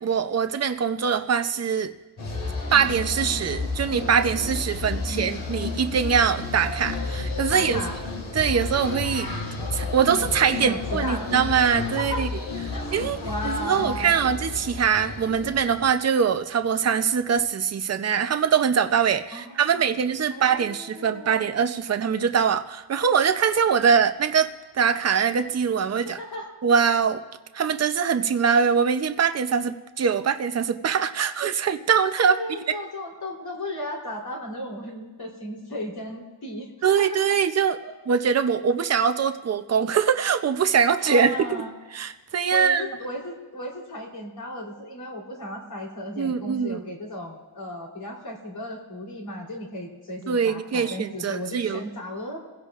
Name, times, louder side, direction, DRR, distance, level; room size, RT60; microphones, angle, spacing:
voice 1, 0.0-1.9 2.7-7.8 8.3-9.3 9.7-12.3 12.9-13.2 13.4-26.2 26.6-27.2 27.5-32.8 36.8-41.3 41.9-42.8 46.2-46.8 50.3-51.8, right 7 dB, 35° right, 8 dB, 0.6 m, -23 dB
sound 1, 2.2-15.9, left 3 dB, 75° left, 3.4 m, -31 dB
voice 2, 4.8-5.4 7.5-8.0 10.6-11.3 12.0-12.2 12.7-12.8 13.2-14.2 19.3-19.8 20.3-21.5 26.0-26.5 32.3-37.2 37.8-37.9 41.1-41.7 42.5-52.4, left 1 dB, 50° left, -1 dB, 3.6 m, -35 dB
29.0 x 16.5 x 2.5 m, 1.2 s
wide cardioid pair, 155°, 48 cm